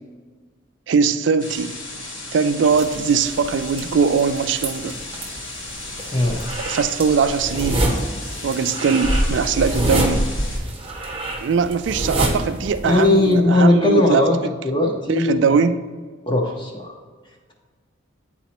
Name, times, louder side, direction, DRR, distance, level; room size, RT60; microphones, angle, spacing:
voice 1, 0.9-1.7 2.3-5.0 6.7-7.8 8.4-10.3 11.4-14.2 15.1-15.8, right 5 dB, 65° right, 12 dB, 0.3 m, -20 dB
sound 1, 1.4-10.6, equal, 75° left, 1.9 m, -30 dB
sound 2, 2.7-13.3, right 1 dB, 25° right, 0.9 m, -27 dB
voice 2, 12.8-14.4 14.6-15.6 16.3-16.9, left 2 dB, 25° left, -1 dB, 0.6 m, -18 dB
9.1 x 4.1 x 2.9 m, 1.5 s
head